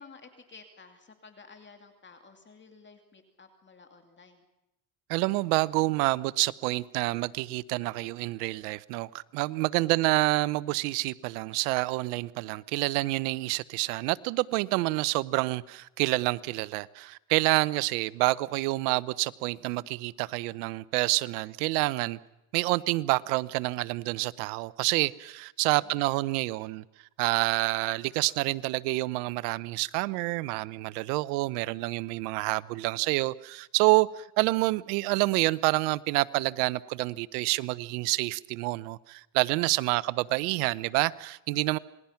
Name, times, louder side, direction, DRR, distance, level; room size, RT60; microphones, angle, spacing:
voice 1, 0.0-4.4 25.6-26.1 39.9-40.0, left 4 dB, 25° left, 2.6 m, -53 dB
voice 2, 5.1-22.2 22.5-26.8 27.2-41.8, right 21 dB, 80° right, 0.8 m, -28 dB
27.5 x 20.0 x 5.8 m
supercardioid pair, 105°, 44 cm